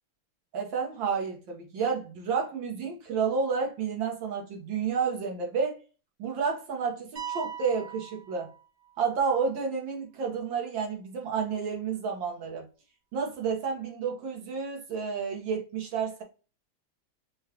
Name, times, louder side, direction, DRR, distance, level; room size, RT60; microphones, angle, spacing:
voice 1, 0.5-5.8 6.2-8.5 9.0-12.7 13.1-16.2, right 6 dB, 80° right, 1.9 m, -30 dB
sound 1, 7.2-9.1, right 9 dB, 50° right, 0.8 m, -40 dB
5.3 x 2.4 x 2.8 m
omnidirectional pair, 2.1 m